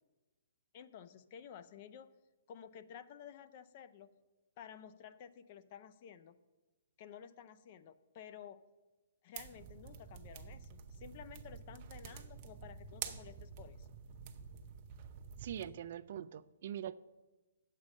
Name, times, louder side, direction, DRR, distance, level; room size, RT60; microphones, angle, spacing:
voice 1, 0.7-2.1 2.5-4.1 4.6-6.4 7.0-8.6 9.2-13.9, left 8 dB, 40° left, 13 dB, 0.4 m, -53 dB
sound 1, 9.4-15.6, right 7 dB, 35° right, 0.7 m, -49 dB
voice 2, 15.4-17.0, right 10 dB, 50° right, 15 dB, 0.3 m, -43 dB
8.7 x 7.4 x 5.2 m, 1.2 s
hypercardioid pair, 155°, 0 cm